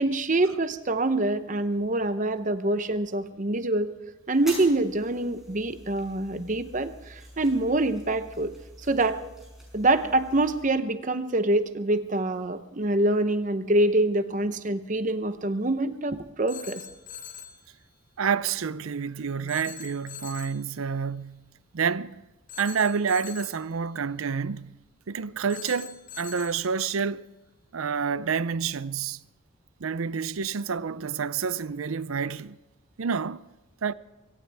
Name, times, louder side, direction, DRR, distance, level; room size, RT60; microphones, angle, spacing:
voice 1, 0.0-3.9 4.3-8.5 8.9-9.2 9.7-16.8, right 2 dB, 35° right, 0.8 m, -25 dB
sound 1, 4.3-10.6, right 1 dB, ahead, 5.9 m, -46 dB
Telephone, 16.5-17.6 19.5-20.6 22.5-23.7 25.5-26.7, left 8 dB, 40° left, 1.9 m, -43 dB
voice 2, 18.2-22.2 22.6-24.8 25.1-27.3 27.7-29.2 29.8-32.6 33.0-33.4 33.8-33.9, right 6 dB, 80° right, 0.5 m, -29 dB
23.5 x 17.0 x 3.5 m
head